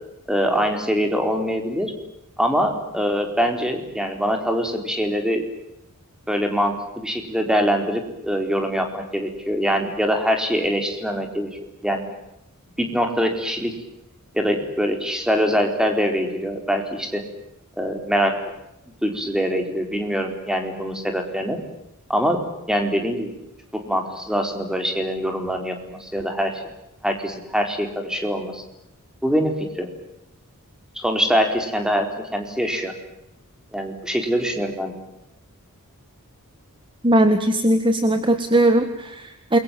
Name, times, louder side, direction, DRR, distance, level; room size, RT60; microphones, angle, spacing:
voice 1, 0.3-1.9 2.4-5.4 6.3-12.0 12.8-13.7 14.3-17.2 17.8-18.4 19.0-21.6 22.1-23.4 23.7-26.5 27.0-28.6 29.2-29.9 31.0-32.9 33.7-35.0, equal, 5° right, 4 dB, 4.3 m, -23 dB
voice 2, 37.0-39.6, right 1 dB, 20° right, 7 dB, 1.8 m, -19 dB
29.0 x 23.0 x 7.6 m, 0.85 s
head